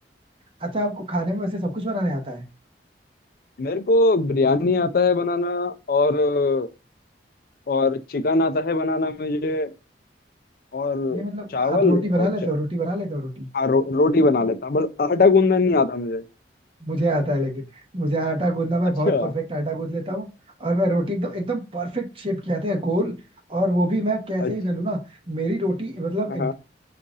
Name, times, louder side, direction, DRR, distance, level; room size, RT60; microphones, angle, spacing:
voice 1, 0.6-2.4 11.1-13.5 16.8-20.3 20.6-23.1 23.5-25.0 25.3-26.5, right 1 dB, 30° right, 1.0 m, -25 dB
voice 2, 3.6-6.7 7.7-9.7 10.7-11.2 11.5-12.3 13.5-16.2 19.1-19.3 24.4-24.5 26.3-26.5, left 3 dB, 55° left, 0.5 m, -21 dB
5.4 x 2.5 x 3.6 m
head